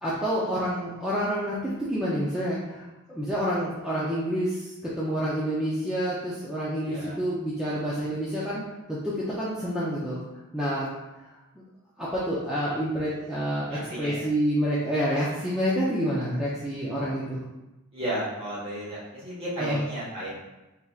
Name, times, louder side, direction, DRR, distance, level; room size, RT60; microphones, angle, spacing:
voice 1, 0.0-8.6 8.9-10.2 10.5-10.8 12.0-17.4 19.6-19.8, equal, 5° right, -9 dB, 0.5 m, -28 dB
voice 2, 6.8-7.2 13.7-14.3 17.9-20.3, right 1 dB, 30° right, -7 dB, 1.4 m, -33 dB
4.1 x 3.5 x 2.4 m, 1.0 s
head